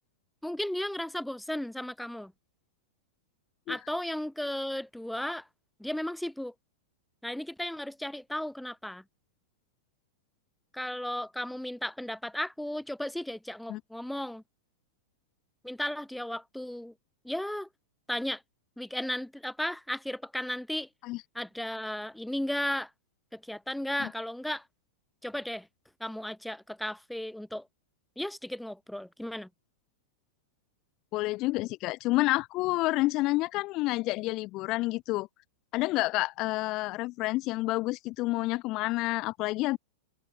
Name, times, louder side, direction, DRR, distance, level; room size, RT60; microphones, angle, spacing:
voice 1, 0.4-2.3 3.7-5.5 5.8-6.5 7.2-9.0 10.7-14.4 15.6-16.9 17.2-17.7 18.1-18.4 18.8-20.9 21.3-22.9 23.3-24.6 25.2-25.7 26.0-27.7 28.2-29.5, left 1 dB, ahead, 2.6 m, -35 dB
voice 2, 31.1-35.3 35.7-39.8, left 20 dB, 45° left, 0.4 m, -29 dB
hypercardioid pair, 100°, 0 cm